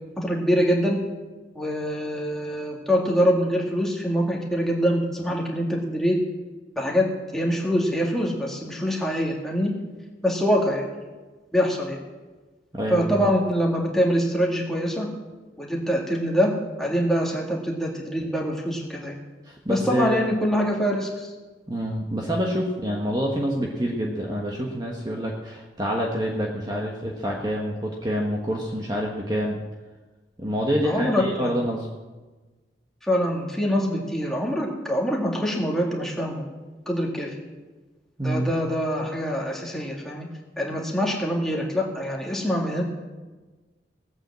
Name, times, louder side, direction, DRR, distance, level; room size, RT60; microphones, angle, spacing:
voice 1, 0.2-1.0 1.5-6.2 6.8-7.1 7.3-9.7 10.2-10.9 11.5-12.0 12.9-15.1 15.6-16.5 16.8-19.2 19.7-21.3 30.8-31.5 33.0-36.4 36.9-37.3 38.2-40.3 40.6-42.8, equal, ahead, -2 dB, 2.2 m, -24 dB
voice 2, 12.7-13.1 19.4-20.2 21.7-29.6 30.4-31.9 38.2-38.5, equal, 20° right, -1 dB, 1.4 m, -27 dB
17.5 x 8.8 x 7.6 m, 1.3 s
head